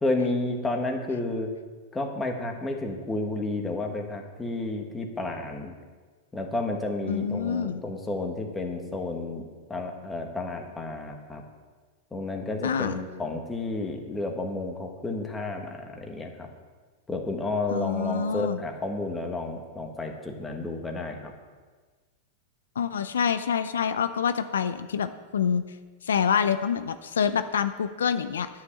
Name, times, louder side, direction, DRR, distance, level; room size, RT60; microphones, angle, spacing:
voice 1, 0.0-1.5 1.9-5.7 6.3-9.4 9.7-11.4 12.1-16.5 17.1-21.3, left 2 dB, 10° left, 2 dB, 1.5 m, -31 dB
voice 2, 7.1-7.8 12.6-13.0 17.7-18.6 22.8-25.6 26.0-28.5, left 7 dB, 90° left, 10 dB, 0.5 m, -26 dB
9.7 x 5.7 x 8.3 m, 1.4 s
hypercardioid pair, 120°, 0 cm